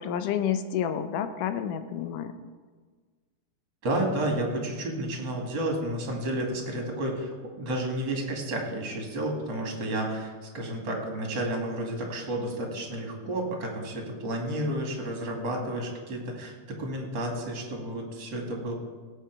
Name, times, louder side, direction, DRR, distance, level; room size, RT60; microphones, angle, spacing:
voice 1, 0.0-2.3, left 9 dB, 85° left, 10 dB, 2.4 m, -29 dB
voice 2, 3.8-18.7, right 1 dB, 40° right, 1 dB, 2.7 m, -31 dB
17.5 x 8.0 x 4.7 m, 1.4 s
omnidirectional pair, 3.6 m